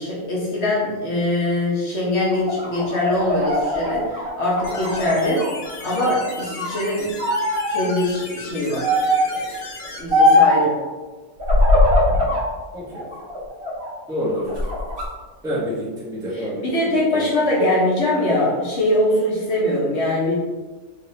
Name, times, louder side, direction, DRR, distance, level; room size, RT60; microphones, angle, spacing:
voice 1, 0.0-5.5 5.8-7.1 7.7-9.0 9.3-9.5 9.8-10.8 16.3-20.3, left 1 dB, 55° left, -5 dB, 1.4 m, -22 dB
sound 1, 2.3-5.5 5.9-6.8 7.2-7.8 8.8-9.3 10.1-10.7 11.4-12.5 12.9-13.9 14.4-15.1, left 1 dB, 45° right, 1.5 m, -20 dB
sound 2, 4.6-10.0, left 2 dB, 85° left, 1.3 m, -36 dB
voice 2, 14.1-14.5 15.4-17.2, equal, 5° right, -9 dB, 1.0 m, -28 dB
4.0 x 4.0 x 2.8 m, 1.3 s
omnidirectional pair, 1.4 m